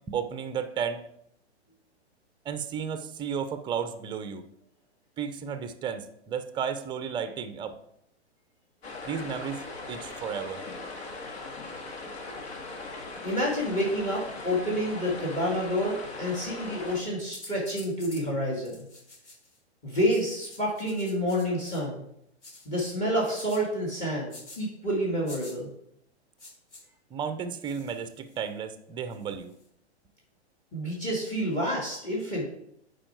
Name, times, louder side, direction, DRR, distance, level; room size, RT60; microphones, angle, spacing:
voice 1, 0.1-1.0 2.4-4.4 5.2-7.8 9.1-9.6 9.9-10.6 27.1-29.5, right 7 dB, 15° right, 11 dB, 0.5 m, -33 dB
sound 1, 8.8-17.0, left 3 dB, 65° left, 1.9 m, -39 dB
voice 2, 13.2-18.8 19.8-22.0 22.7-25.7 30.7-32.4, equal, 20° left, -3 dB, 2.4 m, -29 dB
sound 2, 17.3-18.2 18.6-19.6 20.1-21.8 22.4-22.7 23.3-23.6 24.3-24.6 25.3-25.5 26.4-26.8 27.6-28.5 29.1-29.7, left 2 dB, 85° left, 3.2 m, -48 dB
8.8 x 4.8 x 4.5 m, 0.75 s
hypercardioid pair, 125°, 34 cm